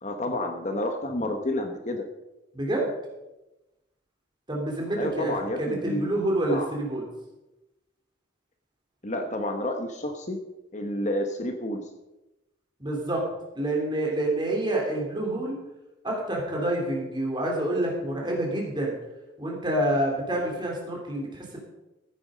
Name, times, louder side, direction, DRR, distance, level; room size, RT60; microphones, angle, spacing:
voice 1, 0.0-2.1 5.0-6.1 6.5-6.7 9.0-10.4 10.7-11.8, left 1 dB, 40° left, 5 dB, 1.2 m, -30 dB
voice 2, 2.5-2.9 4.5-7.1 12.8-13.3 13.6-15.6 16.0-18.9 19.4-21.6, right 1 dB, 25° right, -1 dB, 3.5 m, -27 dB
14.5 x 9.6 x 5.2 m, 0.99 s
head